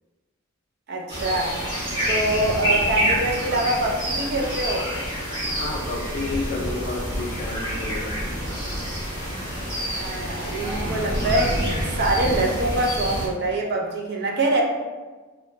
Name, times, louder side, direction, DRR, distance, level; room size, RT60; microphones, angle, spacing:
voice 1, 0.9-1.6 2.1-4.9 9.9-14.6, right 1 dB, 50° right, 0 dB, 0.4 m, -24 dB
sound 1, 1.1-13.3, equal, 25° right, 1.0 m, -27 dB
voice 2, 5.5-8.4, left 3 dB, 50° left, 1 dB, 0.4 m, -31 dB
2.7 x 2.1 x 2.8 m, 1.3 s
head